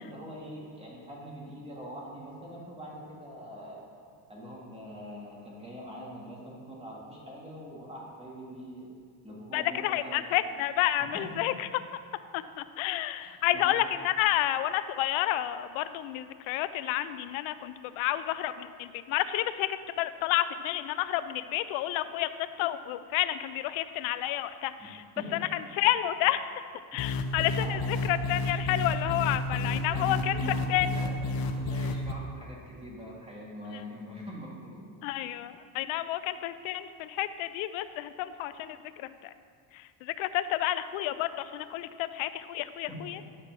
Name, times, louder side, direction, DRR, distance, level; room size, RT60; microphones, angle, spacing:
voice 1, 0.0-3.8 4.3-8.9 9.2-10.4 11.1-11.2 13.2-13.8 24.8-24.9 25.2-25.4 27.6-27.9 29.9-34.8 42.9-43.0, equal, 15° right, -5 dB, 2.2 m, -43 dB
voice 2, 9.5-11.7 12.3-25.0 25.3-26.4 26.9-30.4 30.7-30.9 33.7-33.8 35.0-39.3 39.7-43.2, left 13 dB, 80° left, 13 dB, 0.6 m, -30 dB
sound 1, 27.0-32.1, left 2 dB, 50° left, 0.8 m, -31 dB
10.0 x 4.4 x 6.0 m, 2.1 s
cardioid pair, 110°, 46 cm